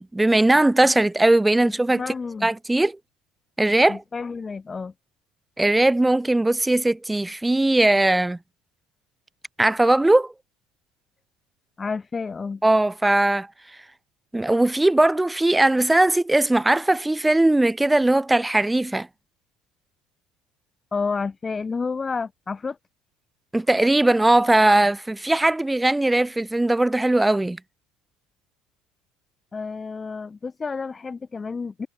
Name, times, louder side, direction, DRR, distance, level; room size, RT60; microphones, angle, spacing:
voice 1, 0.0-2.0 2.4-3.0 3.6-4.0 5.6-8.4 9.6-10.3 12.6-13.5 14.3-19.1 23.5-27.6, right 2 dB, 10° right, 0.7 m, -19 dB
voice 2, 1.6-2.5 3.9-4.9 11.8-12.6 20.9-22.8 29.5-31.9, left 4 dB, 25° left, 1.8 m, -30 dB
hypercardioid pair, 70°, 0 cm